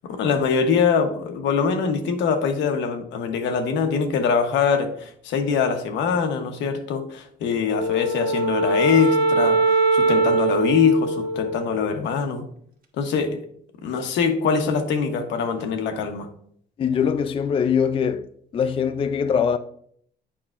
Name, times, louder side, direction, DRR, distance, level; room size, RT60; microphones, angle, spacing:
voice 1, 0.0-12.5 13.0-13.4 13.8-16.3, left 6 dB, 85° left, 0.9 m, -23 dB
Wind instrument woodwind instrument, 7.7-12.2, right 3 dB, 50° right, 1.3 m, -22 dB
voice 2, 16.8-18.2 18.5-19.6, left 7 dB, 30° left, 0.3 m, -22 dB
8.6 x 5.4 x 2.4 m
cardioid pair, 115°, 19 cm